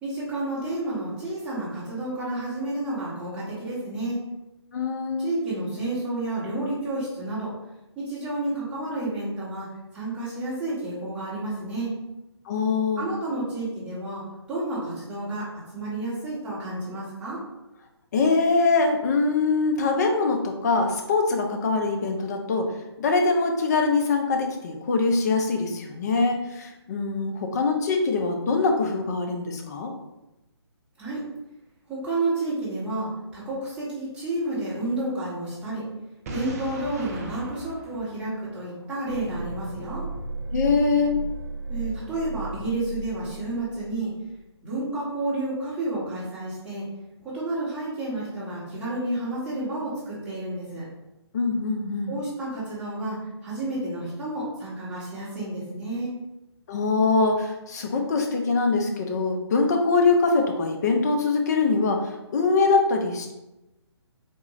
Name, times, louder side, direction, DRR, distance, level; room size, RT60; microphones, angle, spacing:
voice 1, 0.0-4.2 5.2-7.5 7.9-9.7 9.9-12.0 13.0-14.2 14.5-17.4 31.0-31.2 31.9-35.8 36.3-40.1 41.7-44.1 44.6-46.8 47.2-50.9 52.1-56.1, right 2 dB, 10° right, -10 dB, 1.2 m, -30 dB
voice 2, 4.7-5.3 12.5-13.1 18.1-22.7 23.0-29.9 40.5-41.2 51.3-52.1 56.7-63.3, left 4 dB, 40° left, 3 dB, 0.5 m, -23 dB
Boom, 36.3-39.1, right 2 dB, 35° right, 0.5 m, -38 dB
sound 1, 39.0-44.0 44.3-44.4, right 3 dB, 50° right, 1.2 m, -35 dB
3.7 x 2.4 x 3.0 m, 0.96 s
figure-of-eight pair, 145°, 14 cm